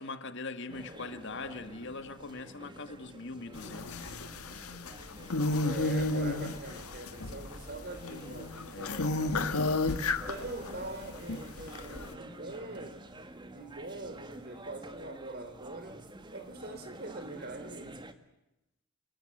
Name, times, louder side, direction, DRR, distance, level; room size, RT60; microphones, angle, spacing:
voice 1, 0.0-4.0 8.7-8.9 12.0-12.2, left 3 dB, 55° left, 1.7 m, -42 dB
sound 1, 0.7-18.1, right 1 dB, 20° right, 1.8 m, -50 dB
sound 2, 3.5-10.8 11.1-12.1, left 2 dB, 90° left, 1.8 m, -32 dB
voice 2, 5.6-9.8 10.2-13.0 13.5-16.0 16.3-18.1, right 2 dB, 45° right, 3.7 m, -43 dB
29.0 x 19.5 x 7.8 m
head